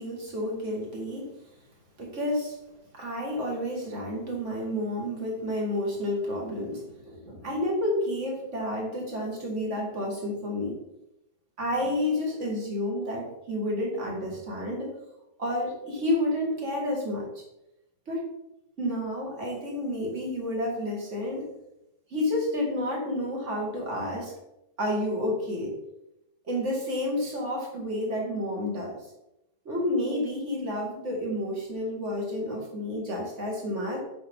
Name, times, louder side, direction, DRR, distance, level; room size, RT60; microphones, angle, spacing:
voice 1, 0.0-1.4 2.0-2.6 2.9-10.8 11.6-14.9 15.4-17.3 18.1-18.3 18.8-21.5 22.1-24.3 24.8-25.7 26.5-29.1 29.7-34.0, left 1 dB, 45° right, -1 dB, 2.3 m, -30 dB
8.6 x 5.4 x 3.7 m, 0.89 s
omnidirectional pair, 1.8 m